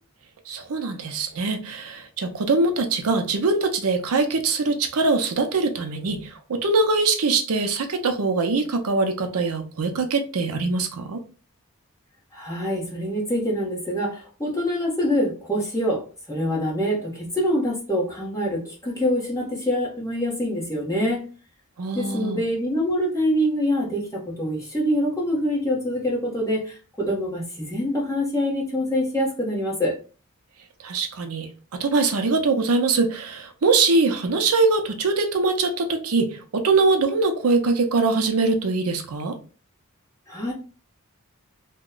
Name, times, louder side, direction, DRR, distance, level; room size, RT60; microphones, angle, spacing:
voice 1, 0.5-11.2 21.8-22.4 30.8-39.4, right 3 dB, 85° right, 0.6 m, -23 dB
voice 2, 12.3-21.2 21.9-30.0 40.3-40.5, equal, 15° left, 1.0 m, -25 dB
2.9 x 2.2 x 3.7 m
head